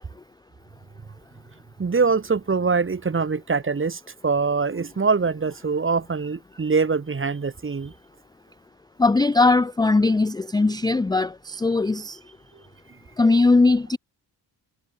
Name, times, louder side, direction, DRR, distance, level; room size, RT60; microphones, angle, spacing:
voice 1, 1.8-7.9, right 4 dB, 30° right, 1.5 m, -23 dB
voice 2, 9.0-12.2 13.2-14.0, left 3 dB, 10° left, 0.4 m, -19 dB
cardioid pair, 95°, 42 cm